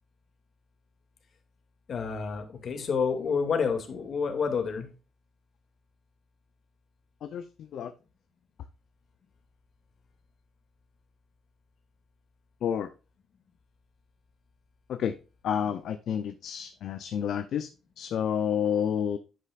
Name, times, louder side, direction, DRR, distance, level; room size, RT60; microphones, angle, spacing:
voice 1, 1.9-4.9, left 5 dB, 55° left, 2.4 m, -29 dB
voice 2, 7.2-7.9 12.6-12.9 14.9-15.2 15.4-17.7 18.0-19.2, left 8 dB, 70° left, 0.6 m, -30 dB
10.5 x 8.2 x 2.5 m
cardioid pair, 90°, 0 cm